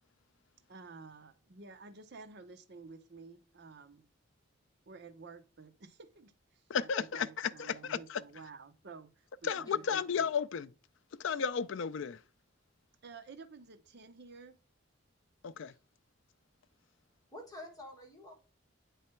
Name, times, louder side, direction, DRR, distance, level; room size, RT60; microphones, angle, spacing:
voice 1, 0.7-4.1 4.9-10.3 13.0-14.6, right 4 dB, 55° right, 0.8 m, -52 dB
voice 2, 6.7-8.2 9.4-10.7 11.2-12.2 15.4-15.7, left 6 dB, 65° left, 0.4 m, -33 dB
voice 3, 9.5-9.9 17.3-18.3, left 1 dB, 20° left, 1.7 m, -49 dB
8.5 x 3.3 x 4.4 m
head